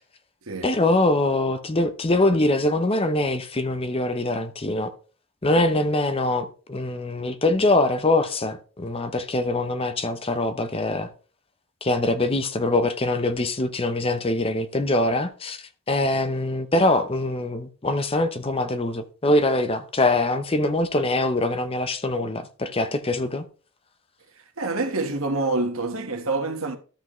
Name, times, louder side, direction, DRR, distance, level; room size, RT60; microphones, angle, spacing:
voice 1, 0.6-4.9 5.4-11.1 11.8-23.4, left 2 dB, 25° left, 0.7 m, -23 dB
voice 2, 24.6-26.8, right 2 dB, 75° right, 1.3 m, -26 dB
13.0 x 6.0 x 3.1 m
head